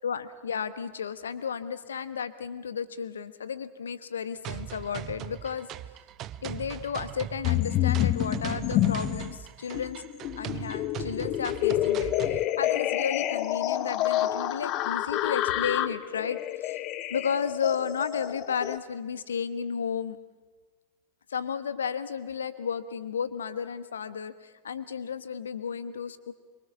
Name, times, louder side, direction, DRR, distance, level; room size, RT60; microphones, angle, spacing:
voice 1, 0.0-5.7 6.4-10.0 10.4-16.8 17.1-20.2 21.3-26.3, left 7 dB, 70° left, 13 dB, 1.1 m, -33 dB
sound 1, 4.4-12.4, right 12 dB, 35° right, 0.6 m, -39 dB
sound 2, 7.4-9.3 9.7-18.8, left 13 dB, 40° left, 0.8 m, -28 dB
24.0 x 23.5 x 6.1 m, 1.3 s
figure-of-eight pair, 90°, 0 cm